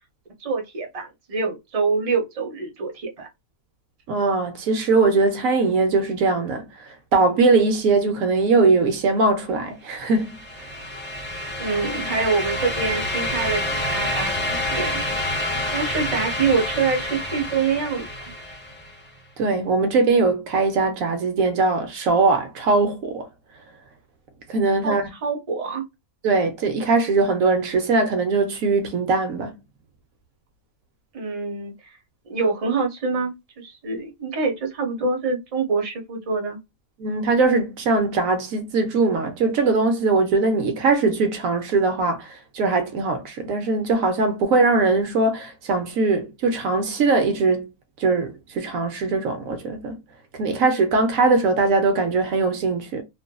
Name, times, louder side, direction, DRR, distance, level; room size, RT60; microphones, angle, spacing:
voice 1, 0.4-3.3 11.6-15.4 15.7-18.1 24.8-25.8 31.1-32.0 32.3-36.6, right 4 dB, 30° right, 0.7 m, -26 dB
voice 2, 4.1-10.7 19.4-23.3 24.5-25.1 26.2-29.6 37.0-47.7 48.0-50.0 50.3-53.0, right 3 dB, 75° right, 1.1 m, -21 dB
sound 1, 10.1-19.0, left 1 dB, 15° left, 0.5 m, -28 dB
2.6 x 2.5 x 2.2 m
omnidirectional pair, 1.5 m